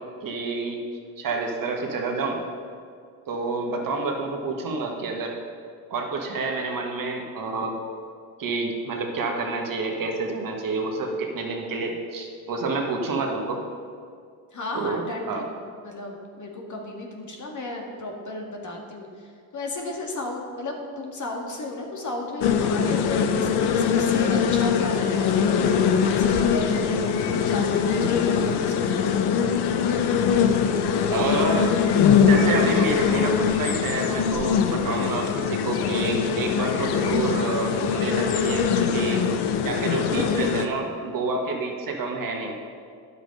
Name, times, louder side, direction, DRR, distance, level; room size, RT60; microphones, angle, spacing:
voice 1, 0.2-0.8 1.2-2.4 3.3-5.3 5.9-7.7 8.4-13.6 14.7-15.4 31.1-31.7 32.2-39.2 39.6-42.5, right 3 dB, 50° right, 1 dB, 1.7 m, -28 dB
voice 2, 14.5-25.6 26.0-29.1, left 2 dB, 45° left, 0 dB, 2.0 m, -34 dB
sound 1, 22.4-40.7, left 7 dB, 65° left, 0.9 m, -22 dB
9.9 x 7.0 x 5.3 m, 2.2 s
supercardioid pair, 65°, 42 cm